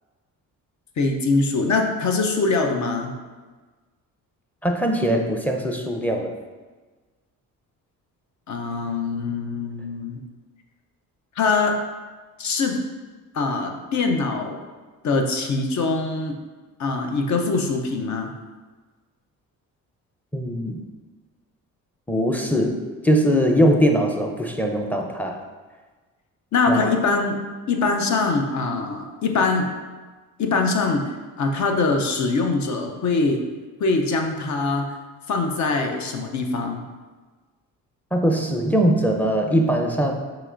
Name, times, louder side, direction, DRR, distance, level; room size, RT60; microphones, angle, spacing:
voice 1, 1.0-3.1 8.5-10.2 11.4-11.8 12.4-12.8 13.3-14.6 15.0-16.4 16.8-18.3 26.5-27.4 27.7-29.7 30.4-31.0 31.4-33.4 33.8-35.0 35.3-36.8, left 3 dB, 50° left, 4 dB, 0.7 m, -23 dB
voice 2, 4.6-6.3 20.3-20.8 22.1-25.4 26.7-26.8 38.1-40.1, equal, 5° left, 2 dB, 0.6 m, -21 dB
5.8 x 3.0 x 2.5 m, 1.3 s
supercardioid pair, 70°, 36 cm